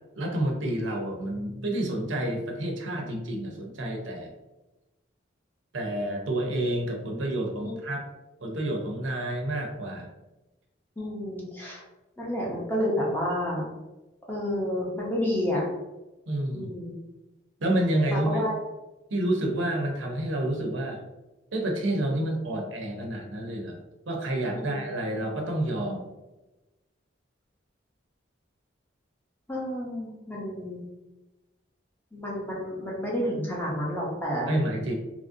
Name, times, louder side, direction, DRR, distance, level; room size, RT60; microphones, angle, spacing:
voice 1, 0.1-4.3 5.7-8.0 8.4-10.1 16.3-16.7 17.6-18.4 19.1-21.0 21.5-23.8 24.1-26.0 34.5-34.9, right 1 dB, 80° right, 1 dB, 0.6 m, -29 dB
voice 2, 11.0-11.8 12.2-13.7 14.3-15.6 16.5-16.9 18.1-18.5 24.5-24.7 29.5-30.8 32.1-34.6, equal, 10° left, -4 dB, 0.6 m, -30 dB
2.9 x 2.6 x 2.5 m, 1.0 s
head